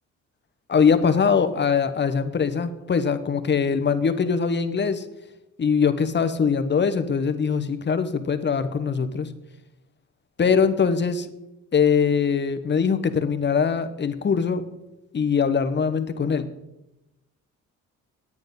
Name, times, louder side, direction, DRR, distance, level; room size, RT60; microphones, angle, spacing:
voice 1, 0.7-5.0 5.6-9.3 10.4-11.3 11.7-14.6 15.1-16.5, left 6 dB, 35° left, 10 dB, 1.0 m, -22 dB
9.6 x 9.0 x 5.3 m, 0.92 s
cardioid pair, 90°, 30 cm